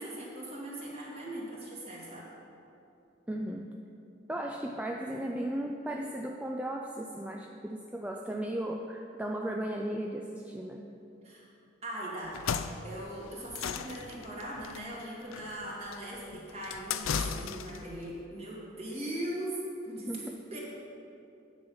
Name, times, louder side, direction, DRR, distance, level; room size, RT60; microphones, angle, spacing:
voice 1, 0.0-2.3 11.2-11.5 11.8-12.4 12.7-20.6, right 1 dB, 30° right, -5 dB, 2.4 m, -40 dB
voice 2, 3.3-3.7 4.3-10.8 20.1-20.4, right 1 dB, 5° right, 1 dB, 0.4 m, -36 dB
sound 1, 12.2-17.9, left 7 dB, 85° left, 0.4 m, -36 dB
10.0 x 7.3 x 5.5 m, 2.8 s
head